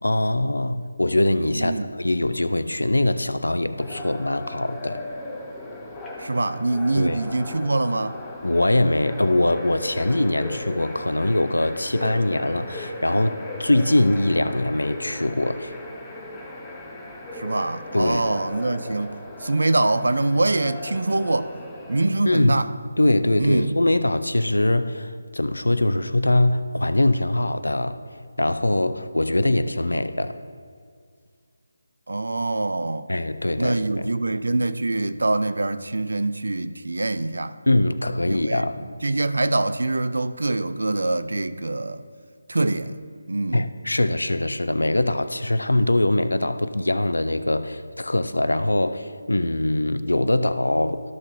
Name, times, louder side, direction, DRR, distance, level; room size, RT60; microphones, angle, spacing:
voice 1, 0.0-5.0 6.9-7.2 8.4-15.7 17.9-18.3 22.3-22.6 23.0-28.0 28.4-30.4 33.1-34.1 37.7-38.8 43.5-51.0, left 1 dB, 80° left, 0.5 m, -22 dB
voice 2, 1.5-1.9 6.2-8.2 17.3-21.5 21.9-22.7 23.4-23.8 32.1-33.1 33.6-37.6 38.3-42.0 42.5-42.9 43.3-43.7, right 2 dB, 65° right, 0.5 m, -24 dB
sound 1, 3.8-22.1, left 1 dB, 5° left, 0.8 m, -37 dB
13.0 x 5.9 x 2.7 m
figure-of-eight pair, 155°, 0 cm